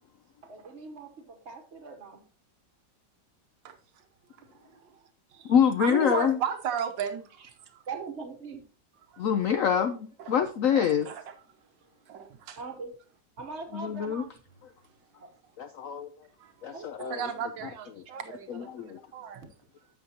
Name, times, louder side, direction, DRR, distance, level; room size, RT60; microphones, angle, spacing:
voice 1, 0.4-2.2 7.9-8.6 12.6-12.9 13.4-14.3 15.2-15.3 16.7-17.2, right 4 dB, 45° right, 1.1 m, -41 dB
voice 2, 3.7-4.1 4.4-5.5 5.8-7.8 8.9-9.3 10.2-10.4 10.7-11.4 12.1-12.6 16.4-19.7, right 8 dB, 85° right, 1.6 m, -36 dB
voice 3, 5.5-6.4 9.2-11.1 13.7-14.3 15.6-16.1 16.6-17.2 18.5-19.0, left 8 dB, 75° left, 0.7 m, -25 dB
10.0 x 7.4 x 2.8 m
omnidirectional pair, 2.0 m